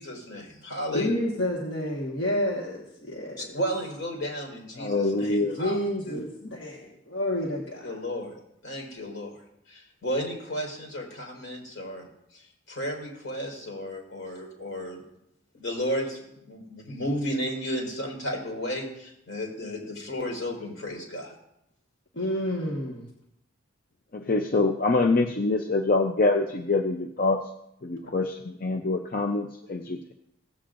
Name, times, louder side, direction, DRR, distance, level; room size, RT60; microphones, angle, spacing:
voice 1, 0.0-1.1 3.4-5.7 6.0-6.2 7.8-8.3 8.6-9.3 9.7-12.1 12.7-15.0 15.5-21.3 28.0-28.1, equal, 80° left, 0 dB, 4.1 m, -33 dB
voice 2, 0.9-3.5 5.4-7.9 22.1-23.0, left 1 dB, 60° left, -3 dB, 1.4 m, -30 dB
voice 3, 4.8-5.6 24.1-27.4 27.8-30.1, left 3 dB, 45° left, 4 dB, 0.5 m, -25 dB
17.0 x 8.5 x 2.6 m, 0.79 s
head